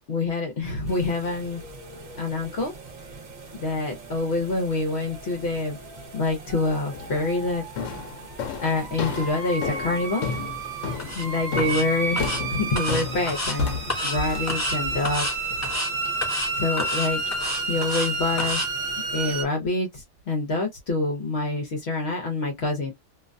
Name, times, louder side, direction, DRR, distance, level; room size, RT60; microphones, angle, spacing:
voice 1, 0.1-1.6 2.2-2.7 3.6-5.8 6.1-7.6 8.6-10.3 11.1-13.8 14.0-15.3 16.6-17.2 17.7-18.7 19.1-22.9, left 3 dB, 65° left, 1.0 m, -26 dB
sound 1, 0.9-19.4, right 3 dB, 50° right, 0.7 m, -33 dB
sound 2, 6.9-7.3 7.8-15.7, left 4 dB, 90° left, 1.0 m, -32 dB
sound 3, 11.0-11.2 11.6-11.8 12.2-12.4 12.8-13.6 13.9-14.2 14.5-14.8 15.0-15.3 15.6-15.9 16.2-16.5 16.8-18.1 18.4-18.7, left 2 dB, 15° left, 0.6 m, -30 dB
2.6 x 2.2 x 2.4 m
omnidirectional pair, 1.2 m